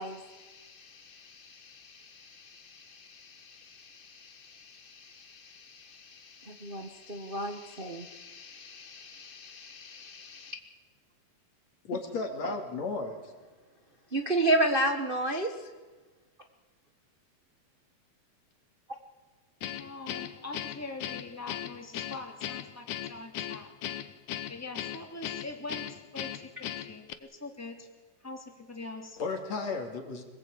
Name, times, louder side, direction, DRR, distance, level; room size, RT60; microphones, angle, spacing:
voice 1, 0.0-10.6 14.1-15.5, right 1 dB, 35° right, 4 dB, 0.9 m, -34 dB
voice 2, 11.9-13.3 29.2-30.2, left 3 dB, 60° left, 3 dB, 4.0 m, -34 dB
Guitar, 19.6-27.1, left 11 dB, 75° left, 2.4 m, -38 dB
voice 3, 19.8-23.7 24.5-27.9 28.2-29.2, left 2 dB, 5° left, 3 dB, 2.6 m, -43 dB
26.0 x 20.0 x 8.8 m, 1.3 s
omnidirectional pair, 3.4 m